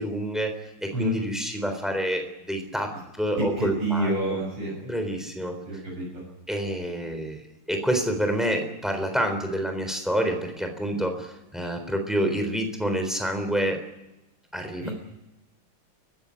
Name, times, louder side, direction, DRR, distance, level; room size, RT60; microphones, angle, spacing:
voice 1, 0.0-4.4 4.8-5.8 6.5-7.4 7.7-13.8 14.5-14.9, right 1 dB, ahead, 5 dB, 3.6 m, -28 dB
voice 2, 3.6-4.8 5.4-6.2 14.8-14.9, right 1 dB, 85° right, -3 dB, 7.3 m, -28 dB
24.5 x 15.5 x 9.9 m, 0.96 s
omnidirectional pair, 2.4 m